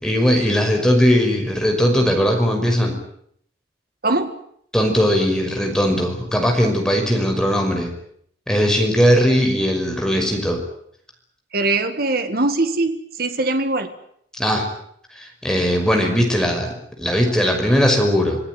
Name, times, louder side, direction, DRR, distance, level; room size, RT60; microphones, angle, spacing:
voice 1, 0.0-3.0 4.7-7.9 8.5-10.6 14.4-14.7 15.2-18.4, equal, 5° left, 2 dB, 5.8 m, -19 dB
voice 2, 4.0-4.4 11.5-13.9, right 2 dB, 55° right, 8 dB, 1.7 m, -21 dB
27.0 x 17.0 x 9.5 m, 0.69 s
head